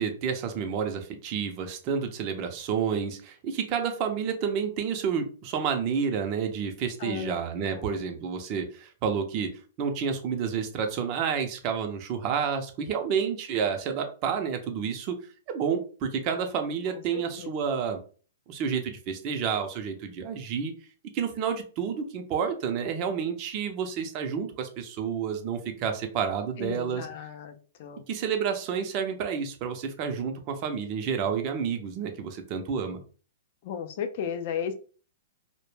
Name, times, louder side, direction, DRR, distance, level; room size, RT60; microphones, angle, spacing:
voice 1, 0.0-9.5 9.8-15.2 15.5-18.0 18.5-20.7 21.1-27.1 28.1-33.0, right 7 dB, 40° right, 5 dB, 0.5 m, -30 dB
voice 2, 7.0-8.0 16.9-17.5 26.6-28.0 33.6-34.7, left 7 dB, 50° left, 7 dB, 0.4 m, -35 dB
2.1 x 2.1 x 3.1 m, 0.38 s
hypercardioid pair, 135°, 0 cm